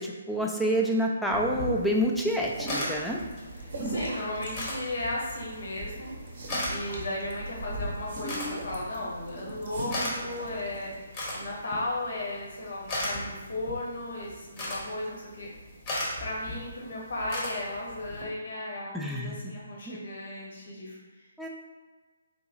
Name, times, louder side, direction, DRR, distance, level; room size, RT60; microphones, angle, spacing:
voice 1, 0.0-3.2 18.9-19.4 19.9-20.0 21.4-21.5, equal, ahead, -2 dB, 0.3 m, -28 dB
sound 1, 1.3-18.2, left 1 dB, 25° left, 0.8 m, -38 dB
sound 2, 2.4-11.0, right 1 dB, 45° right, 0.7 m, -39 dB
voice 2, 3.5-6.4 6.7-15.5 16.2-21.5, left 1 dB, 55° left, -4 dB, 1.1 m, -35 dB
3.8 x 2.8 x 2.5 m, 1.3 s
figure-of-eight pair, 135°, 0 cm